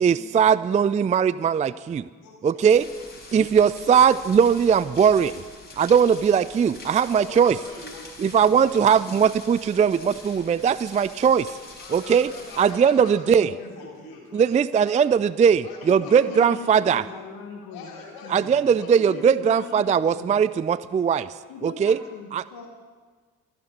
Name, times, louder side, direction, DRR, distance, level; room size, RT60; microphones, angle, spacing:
voice 1, 0.0-2.1 2.4-2.9 3.3-5.4 5.8-7.6 8.2-11.5 11.9-12.3 12.6-13.5 14.3-17.0 18.3-21.3 21.6-22.0 22.3-22.7, right 7 dB, 20° right, 17 dB, 0.3 m, -20 dB
voice 2, 2.2-3.0 3.4-3.6 7.1-8.7 9.0-9.2 11.8-14.4 14.8-15.0 15.6-17.0 17.7-19.4, left 3 dB, 80° left, -2 dB, 3.4 m, -43 dB
sound 1, 2.7-12.7, left 2 dB, 25° left, 4.7 m, -44 dB
voice 3, 15.8-17.9 18.2-18.6 19.1-20.4 21.5-22.7, left 4 dB, 65° left, 2 dB, 1.6 m, -40 dB
14.5 x 11.5 x 6.8 m, 1.5 s
hypercardioid pair, 45°, 37 cm